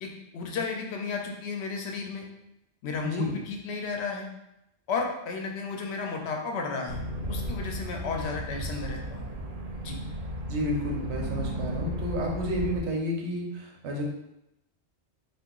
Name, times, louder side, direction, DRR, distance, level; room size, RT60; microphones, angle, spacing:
voice 1, 0.0-2.3 2.8-4.3 4.9-9.3 9.8-10.0, left 4 dB, 75° left, 2 dB, 0.8 m, -33 dB
voice 2, 3.0-3.4 10.5-14.1, equal, 80° right, -1 dB, 1.0 m, -31 dB
sound 1, 6.9-12.8, equal, 60° right, 0.4 m, -34 dB
2.8 x 2.4 x 3.7 m, 0.85 s
omnidirectional pair, 1.2 m